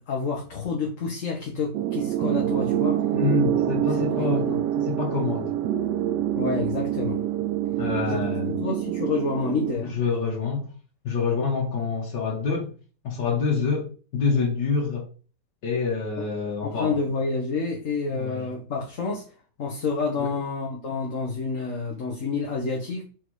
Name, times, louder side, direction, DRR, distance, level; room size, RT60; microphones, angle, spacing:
voice 1, 0.0-3.0 4.0-4.6 6.3-7.2 8.1-8.3 8.6-10.0 16.6-19.2 19.6-23.0, left 4 dB, 50° left, 1.7 m, -29 dB
sound 1, 1.7-9.7, right 12 dB, 80° right, 1.3 m, -26 dB
voice 2, 3.1-4.5 4.8-5.5 7.8-8.5 9.9-10.7 11.0-12.7 13.0-15.1 15.6-17.0 18.1-18.5 20.2-20.3, left 5 dB, 80° left, 2.1 m, -26 dB
6.0 x 5.0 x 4.7 m
omnidirectional pair, 1.8 m